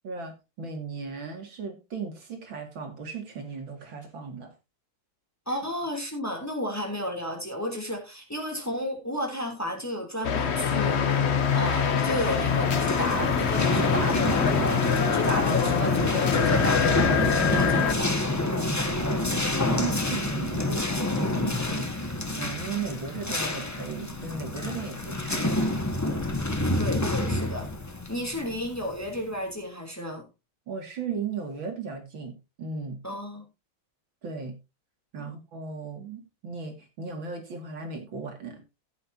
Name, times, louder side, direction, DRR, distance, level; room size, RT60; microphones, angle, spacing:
voice 1, 0.0-4.5 5.5-5.6 18.7-26.6 30.7-33.0 34.2-34.6 35.1-38.6, right 5 dB, 70° right, 3.2 m, -37 dB
voice 2, 5.5-11.0 11.5-14.9 15.1-18.5 26.7-27.7 28.1-30.2 33.0-33.4 35.2-35.3, equal, 5° left, 3.0 m, -33 dB
sound 1, 10.2-17.9, left 7 dB, 45° left, 0.9 m, -25 dB
sound 2, 11.8-29.2, left 2 dB, 30° left, 0.3 m, -28 dB
16.0 x 8.5 x 2.8 m
omnidirectional pair, 2.2 m